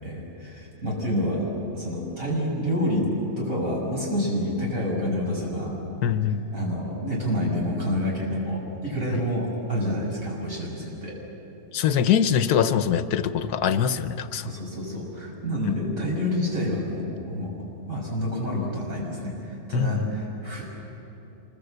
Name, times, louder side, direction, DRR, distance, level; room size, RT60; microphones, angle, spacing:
voice 1, 0.0-3.1 3.4-5.7 6.5-11.1 14.3-17.5 17.9-20.7, left 1 dB, 60° right, -3 dB, 7.0 m, -28 dB
voice 2, 6.0-6.4 11.7-14.5 15.6-15.8 19.7-20.1, left 8 dB, 80° left, 11 dB, 1.3 m, -23 dB
26.5 x 22.0 x 8.1 m, 3.0 s
omnidirectional pair, 1.6 m